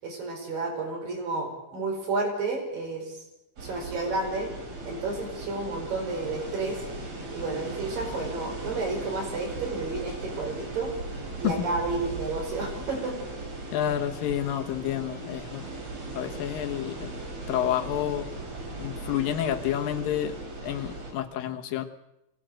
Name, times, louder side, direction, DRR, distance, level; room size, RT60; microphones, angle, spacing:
voice 1, 0.0-3.2 3.6-4.5 4.9-6.8 7.3-10.9 11.4-13.2, right 3 dB, 80° right, 1 dB, 6.5 m, -31 dB
sound 1, 3.6-21.1, right 2 dB, 50° right, 4.9 m, -38 dB
voice 2, 13.7-15.6 16.1-17.1 17.5-18.2 18.8-20.3 20.6-21.8, left 11 dB, 85° left, 6 dB, 3.0 m, -29 dB
23.0 x 17.5 x 7.7 m, 0.90 s
omnidirectional pair, 3.9 m